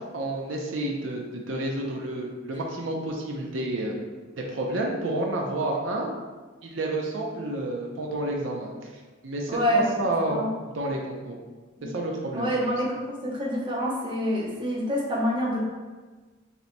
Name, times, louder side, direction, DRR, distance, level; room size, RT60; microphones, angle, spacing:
voice 1, 0.1-4.0 4.4-6.1 6.6-8.7 9.2-10.4 10.7-11.4 11.8-12.5, right 1 dB, 80° right, 0 dB, 0.6 m, -30 dB
voice 2, 9.5-9.9 10.3-10.5 11.8-11.9 12.3-15.7, equal, 25° right, -4 dB, 0.8 m, -27 dB
6.5 x 2.9 x 2.2 m, 1.3 s
head